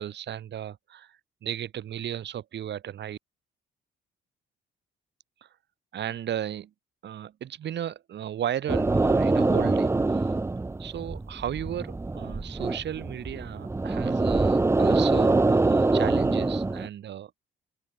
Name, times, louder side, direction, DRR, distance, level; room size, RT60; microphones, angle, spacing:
voice 1, 0.0-3.2 5.9-6.7 7.0-10.2 10.8-17.3, right 10 dB, 60° right, 1.7 m, -35 dB
sound 1, 8.7-16.9, right 3 dB, 15° right, 0.6 m, -24 dB
open air
cardioid pair, 90°, 20 cm